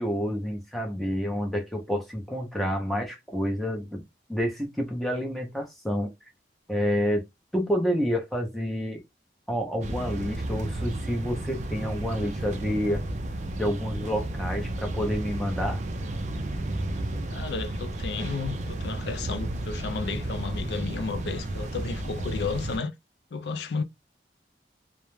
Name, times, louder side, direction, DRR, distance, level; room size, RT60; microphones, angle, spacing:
voice 1, 0.0-4.0 4.3-6.3 6.7-7.2 7.5-9.0 9.5-13.0 13.6-15.8, equal, ahead, 0.6 m, -29 dB
sound 1, 9.8-22.8, right 1 dB, 40° right, 0.3 m, -32 dB
voice 2, 17.3-22.9 23.3-23.8, left 4 dB, 70° left, 0.4 m, -32 dB
2.3 x 2.0 x 3.0 m
head